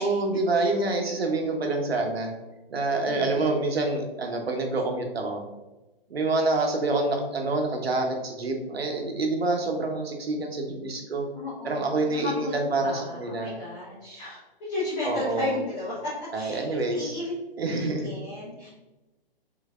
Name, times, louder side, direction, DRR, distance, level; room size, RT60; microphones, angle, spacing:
voice 1, 0.0-2.3 2.7-5.4 6.1-11.3 11.6-13.6 15.0-15.6 16.3-17.1 17.6-18.1, right 2 dB, 80° right, 3 dB, 0.9 m, -27 dB
voice 2, 3.1-3.5 11.3-17.3 17.6-18.7, left 2 dB, 20° left, -9 dB, 1.1 m, -34 dB
3.9 x 3.2 x 2.4 m, 1.1 s
hypercardioid pair, 135°, 30 cm